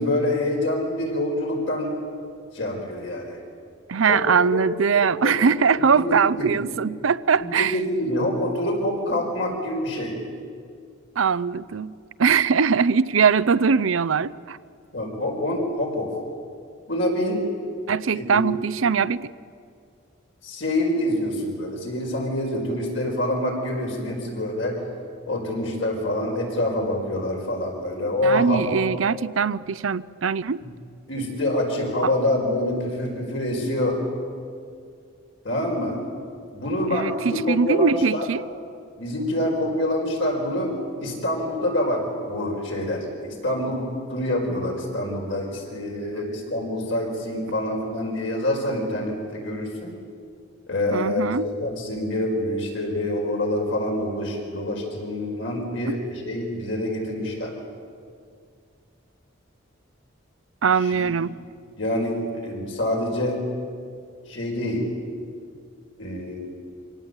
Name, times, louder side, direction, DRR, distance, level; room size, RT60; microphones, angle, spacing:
voice 1, 0.0-2.0 2.5-3.4 4.1-4.6 5.0-5.3 5.8-6.5 7.4-10.1 14.9-16.1 16.9-17.5 18.1-18.4 20.4-24.8 25.3-28.7 30.6-30.7 31.1-34.0 35.4-36.0 36.5-38.3 39.0-40.7 41.0-50.0 50.7-57.5 60.8-61.0 61.8-63.5 64.3-64.9 66.0-66.4, left 1 dB, 70° left, 0 dB, 5.1 m, -26 dB
voice 2, 3.9-7.8 11.2-11.9 12.2-14.6 17.9-19.3 28.2-30.6 32.0-32.1 36.9-38.4 50.9-51.5 55.9-56.0 60.6-61.3, right 6 dB, 80° right, 17 dB, 0.6 m, -21 dB
25.0 x 18.0 x 8.1 m, 2.2 s
head